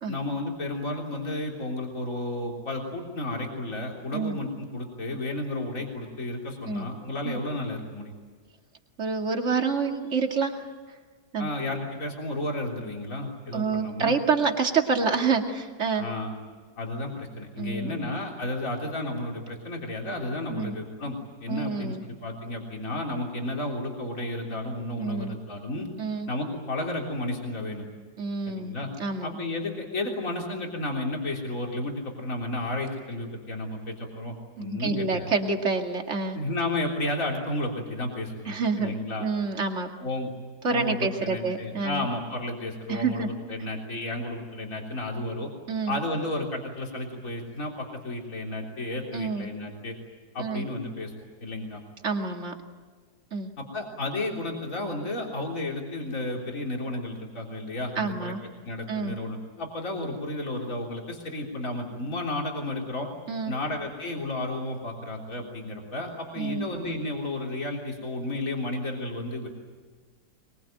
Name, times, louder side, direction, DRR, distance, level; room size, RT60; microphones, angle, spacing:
voice 1, 0.1-8.1 11.4-14.1 16.0-16.4 16.8-22.0 22.2-25.9 26.3-27.8 28.5-28.9 29.2-35.3 36.3-39.3 40.0-40.3 40.7-45.5 45.9-50.0 50.3-51.1 51.4-51.8 53.6-58.3 58.6-63.1 63.5-69.5, left 1 dB, 50° left, 0 dB, 4.0 m, -32 dB
voice 2, 9.0-10.6 11.3-11.5 13.5-16.0 17.6-18.1 20.5-20.7 21.5-22.0 25.0-25.3 26.0-26.3 28.2-29.4 34.6-36.4 38.5-39.9 40.6-42.1 42.9-43.3 45.7-46.0 49.1-49.5 50.4-50.6 52.0-52.6 53.3-53.5 58.0-58.4 58.9-59.2 63.3-63.5 66.4-66.7, right 4 dB, 45° right, 3 dB, 2.5 m, -28 dB
24.0 x 22.5 x 9.1 m, 1.5 s
omnidirectional pair, 1.8 m